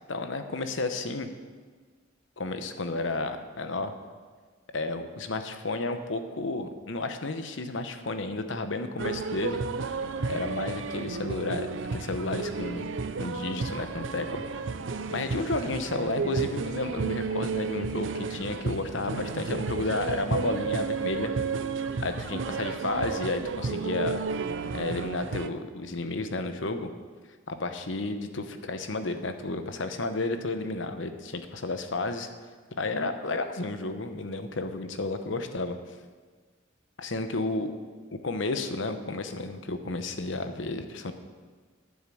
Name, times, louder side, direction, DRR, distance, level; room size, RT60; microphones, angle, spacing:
voice 1, 0.1-1.3 2.4-3.9 4.7-9.6 10.2-11.7 11.9-12.9 13.2-14.4 15.1-21.3 22.0-24.2 24.7-26.9 27.5-32.3 32.8-35.7 37.0-37.7 38.2-41.1, left 2 dB, 70° left, 8 dB, 1.0 m, -32 dB
sound 1, 9.0-25.5, right 4 dB, 75° right, 0.6 m, -32 dB
9.6 x 7.3 x 7.7 m, 1.5 s
head